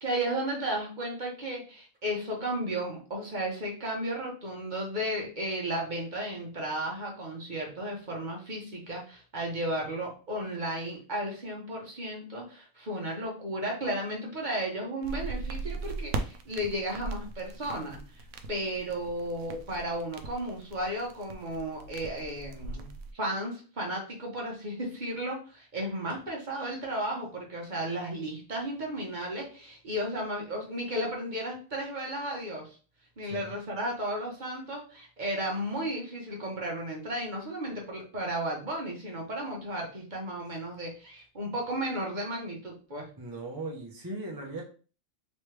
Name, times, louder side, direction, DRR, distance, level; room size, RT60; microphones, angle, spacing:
voice 1, 0.0-22.9 23.1-32.8 33.2-43.1, right 1 dB, 40° right, -1 dB, 1.0 m, -34 dB
sound 1, 15.0-23.1, right 3 dB, 70° right, 0.8 m, -39 dB
voice 2, 33.2-33.5 43.2-44.6, right 2 dB, 20° right, -2 dB, 0.6 m, -38 dB
3.2 x 3.2 x 3.2 m, 0.38 s
omnidirectional pair, 1.5 m